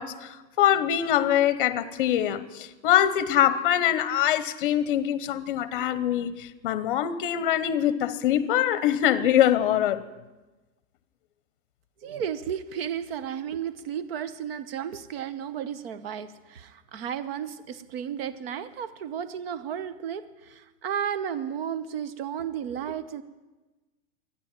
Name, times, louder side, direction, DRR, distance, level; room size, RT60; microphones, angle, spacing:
voice 1, 0.0-10.0, left 11 dB, 40° left, 14 dB, 0.8 m, -24 dB
voice 2, 12.0-23.2, right 8 dB, 45° right, 12 dB, 1.0 m, -33 dB
13.5 x 10.0 x 9.6 m, 1.2 s
supercardioid pair, 180°, 41 cm